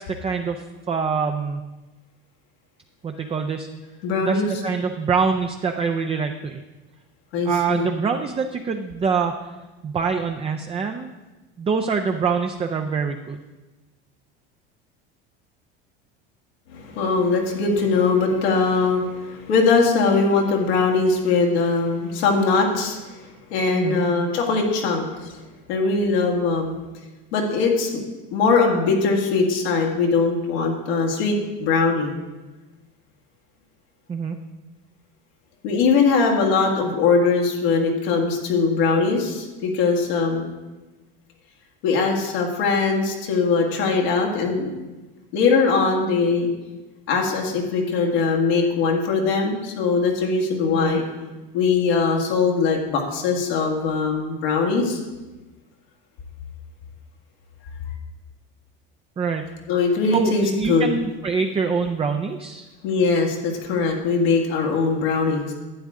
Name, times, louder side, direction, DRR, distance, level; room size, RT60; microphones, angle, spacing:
voice 1, 0.0-1.6 3.0-3.7 4.2-6.6 7.5-9.3 9.8-11.1 11.6-13.4 23.7-24.1 34.1-34.4 50.8-51.0 59.2-59.4 60.1-62.7, right 5 dB, 20° right, 5 dB, 0.5 m, -25 dB
voice 2, 4.0-4.5 7.3-7.9 16.7-23.0 23.5-25.4 25.7-26.7 27.3-27.9 28.3-32.2 35.6-40.5 41.8-44.7 45.3-46.5 47.1-51.0 51.5-55.0 59.7-61.0 62.8-65.5, left 4 dB, 85° left, 0 dB, 2.0 m, -21 dB
12.0 x 8.5 x 3.7 m, 1.2 s
supercardioid pair, 110°, 30 cm